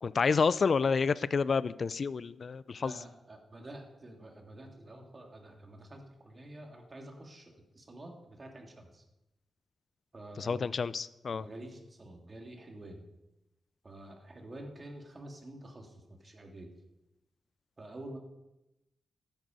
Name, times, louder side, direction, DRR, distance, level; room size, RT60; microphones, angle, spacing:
voice 1, 0.0-2.9 10.4-11.4, left 5 dB, 55° left, 17 dB, 0.4 m, -29 dB
voice 2, 2.8-9.0 10.1-10.7 11.3-13.0 13.8-16.7 17.8-18.2, right 1 dB, 40° right, 2 dB, 2.8 m, -48 dB
12.5 x 8.9 x 5.3 m, 0.95 s
cardioid pair, 50°, 0 cm